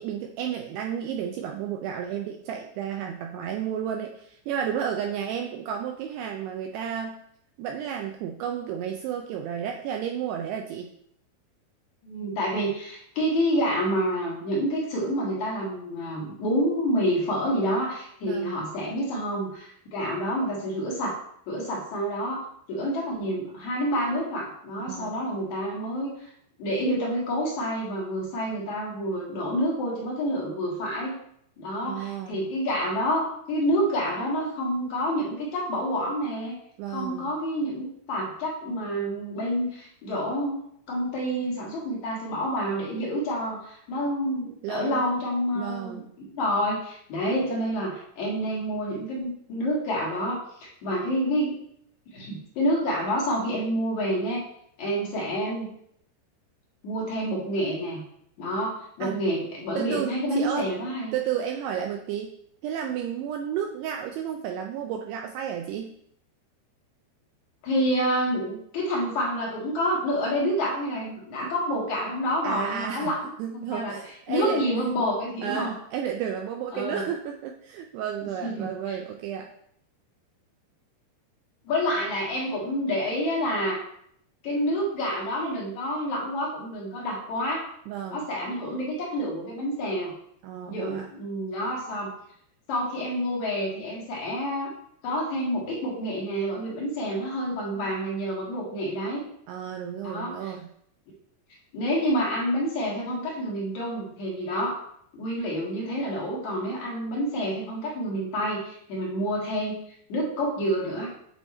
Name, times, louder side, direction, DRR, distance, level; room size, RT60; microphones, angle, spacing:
voice 1, 0.0-7.2 7.6-10.9 18.2-18.6 24.9-25.2 31.8-32.4 36.8-37.3 44.6-45.1 45.6-46.0 59.0-59.2 59.8-60.7 61.1-62.3 62.6-65.9 72.4-73.1 73.4-75.1 75.4-79.5 87.9-88.2 90.4-91.1 97.7-97.9 99.5-100.7, right 8 dB, 90° right, 3 dB, 2.3 m, -32 dB
voice 2, 12.0-21.2 21.5-22.4 22.7-26.1 26.6-31.2 31.6-36.6 36.9-40.6 40.9-46.0 46.3-51.6 52.1-54.4 54.8-55.7 56.8-58.0 58.4-61.1 67.6-73.9 74.3-75.7 76.7-77.0 78.4-79.0 81.6-83.8 84.4-87.6 88.1-90.1 90.7-92.1 92.7-94.7 95.0-99.2 100.0-100.5 101.7-104.8 105.1-109.8 110.1-111.1, equal, 55° left, -4 dB, 2.4 m, -28 dB
8.9 x 3.5 x 4.2 m, 0.70 s
omnidirectional pair, 5.3 m